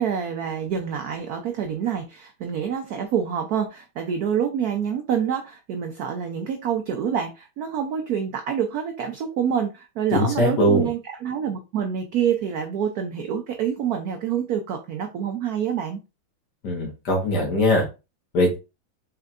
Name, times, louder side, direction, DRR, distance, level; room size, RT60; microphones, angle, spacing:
voice 1, 0.0-16.0, right 8 dB, 80° right, 0.8 m, -27 dB
voice 2, 10.1-10.9 16.6-17.8 18.3-18.6, left 1 dB, 55° left, 1.9 m, -21 dB
4.3 x 3.8 x 2.4 m
omnidirectional pair, 2.2 m